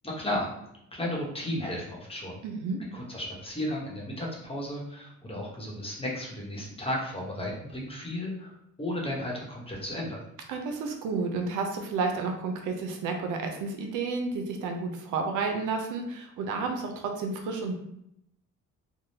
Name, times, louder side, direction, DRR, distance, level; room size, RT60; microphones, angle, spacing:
voice 1, 0.0-0.5 0.9-2.4 2.9-8.5 8.8-10.2, left 1 dB, 20° left, -3 dB, 1.0 m, -34 dB
voice 2, 2.4-2.8 10.5-17.7, right 4 dB, 90° right, 3 dB, 0.6 m, -31 dB
3.5 x 2.2 x 2.8 m, 0.79 s
cardioid pair, 90°, 30 cm